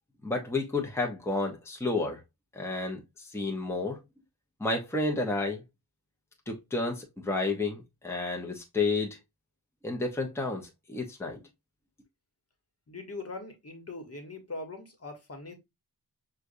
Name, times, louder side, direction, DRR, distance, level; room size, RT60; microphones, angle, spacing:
voice 1, 0.2-2.2 2.5-4.0 4.6-5.6 6.5-9.2 9.8-11.4, left 3 dB, 5° left, 0.9 m, -31 dB
voice 2, 12.9-15.5, left 3 dB, 40° left, 1.3 m, -41 dB
6.3 x 2.5 x 2.6 m
wide cardioid pair, 100°, 38 cm